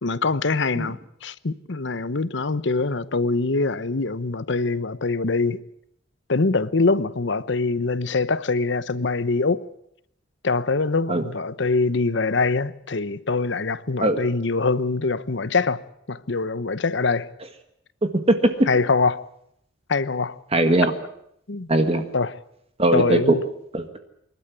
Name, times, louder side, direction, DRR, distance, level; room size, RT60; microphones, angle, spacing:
voice 1, 0.0-5.6 6.3-9.7 10.4-17.3 18.7-19.3 19.9-20.4 21.5-21.7 22.1-22.3 22.9-23.4, left 3 dB, 65° left, 0.9 m, -24 dB
voice 2, 20.5-20.9 21.7-22.0 22.8-23.4 23.7-24.0, right 2 dB, 30° right, 1.7 m, -19 dB
26.0 x 12.5 x 9.8 m
head